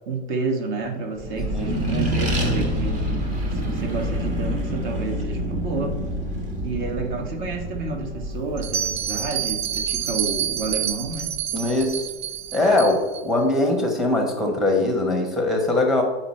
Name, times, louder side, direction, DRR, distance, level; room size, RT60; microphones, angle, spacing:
voice 1, 0.1-3.1 3.5-6.0 6.6-11.3, right 3 dB, 45° right, 6 dB, 1.3 m, -30 dB
Accelerating revving vroom, 1.2-12.1, equal, 20° right, 1.1 m, -28 dB
Bell, 8.6-13.2, right 9 dB, 65° right, 0.7 m, -28 dB
voice 2, 11.5-12.1 12.5-16.0, left 2 dB, ahead, 1 dB, 1.0 m, -21 dB
7.8 x 5.5 x 4.3 m, 1.2 s
supercardioid pair, 150°, 34 cm